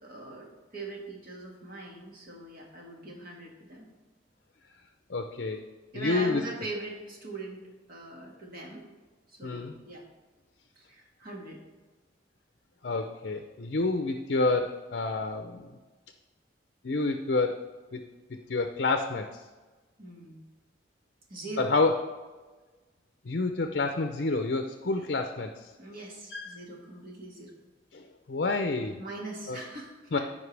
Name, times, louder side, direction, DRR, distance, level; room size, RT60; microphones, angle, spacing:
voice 1, 0.0-3.9 5.9-7.6 7.9-8.8 9.3-10.0 10.8-11.6 20.0-20.4 21.3-21.7 24.8-25.0 25.8-27.5 29.0-30.2, right 2 dB, 50° right, -1 dB, 2.0 m, -41 dB
voice 2, 5.1-5.6 5.9-6.4 9.4-9.8 12.8-15.8 16.8-17.6 17.9-18.0 18.5-19.4 21.6-22.0 23.2-25.7 26.3-26.5 27.9-29.0 29.5-29.6 30.1-30.2, left 3 dB, 60° left, 6 dB, 0.6 m, -28 dB
14.5 x 5.4 x 3.3 m, 1.3 s
head